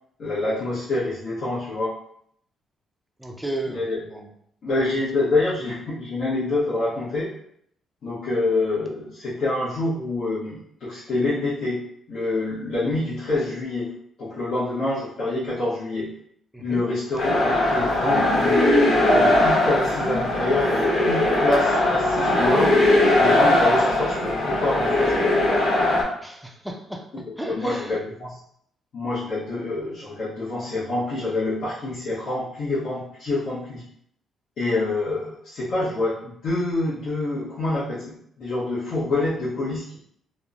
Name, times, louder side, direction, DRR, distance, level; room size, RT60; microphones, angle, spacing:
voice 1, 0.2-2.0 3.7-4.0 4.6-7.3 8.0-11.8 12.1-16.1 16.6-18.6 19.1-22.7 23.2-25.1 27.1-28.4 28.9-33.8 34.6-40.0, left 2 dB, 65° left, -10 dB, 0.9 m, -26 dB
voice 2, 3.2-4.3 4.9-5.0 16.5-16.8 26.2-27.0 27.4-28.0, right 1 dB, 5° right, 2 dB, 0.5 m, -34 dB
sound 1, 17.2-26.0, left 1 dB, 85° left, 1.0 m, -20 dB
3.0 x 2.0 x 2.4 m, 0.69 s
cardioid pair, 90°, 0 cm